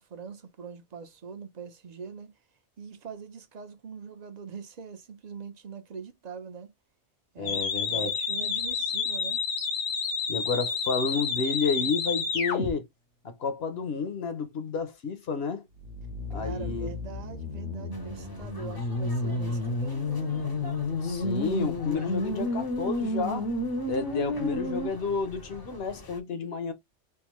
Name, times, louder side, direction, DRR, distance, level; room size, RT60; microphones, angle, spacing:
voice 1, 0.0-2.3 2.8-6.7 7.3-7.6 7.9-9.4 16.3-20.5 24.3-24.8, right 6 dB, 45° right, 0.7 m, -42 dB
voice 2, 7.4-8.1 10.3-12.9 13.2-15.7 16.3-16.9 21.0-23.5 23.9-26.7, left 4 dB, 60° left, 1.0 m, -31 dB
sound 1, 7.5-12.7 15.8-24.9, left 3 dB, 80° left, 1.3 m, -30 dB
sound 2, 17.9-26.2, left 2 dB, 25° left, 0.6 m, -46 dB
3.5 x 2.6 x 3.0 m
omnidirectional pair, 1.2 m